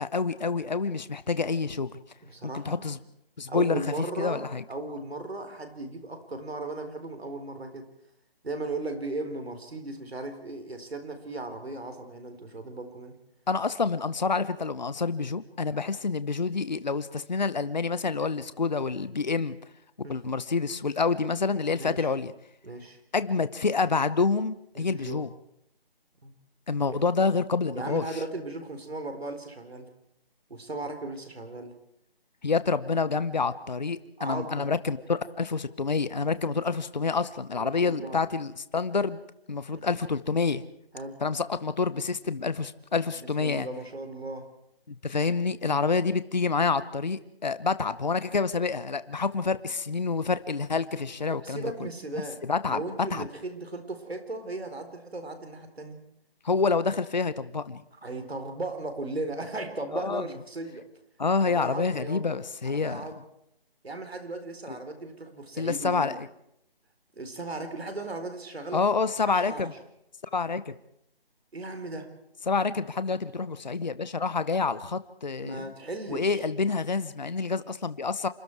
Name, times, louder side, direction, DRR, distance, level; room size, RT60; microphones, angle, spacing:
voice 1, 0.0-1.9 2.4-3.0 3.4-3.8 4.2-4.6 13.5-19.6 20.1-22.3 23.1-25.3 26.7-28.0 32.4-39.2 39.5-40.6 41.2-43.7 44.9-51.7 52.4-52.8 53.1-53.2 56.4-57.8 59.9-60.2 61.2-63.0 65.6-66.3 68.7-69.7 70.3-70.7 72.5-75.7 76.1-78.3, left 4 dB, 45° left, 14 dB, 0.9 m, -28 dB
voice 2, 2.2-2.9 3.5-7.9 8.4-13.1 20.0-20.2 21.7-22.1 22.6-23.0 24.8-25.2 26.2-26.3 26.9-27.0 27.7-29.9 30.5-31.8 34.2-34.7 36.4-36.5 37.5-38.2 40.9-41.2 43.2-44.5 45.6-45.8 51.3-52.4 52.7-56.0 58.0-60.9 61.4-62.4 62.6-63.2 63.8-66.1 67.1-68.8 69.3-69.7 71.5-72.1 75.4-76.5, right 2 dB, 90° right, 7 dB, 4.2 m, -37 dB
27.0 x 23.0 x 4.7 m, 0.77 s
figure-of-eight pair, 175°, 30 cm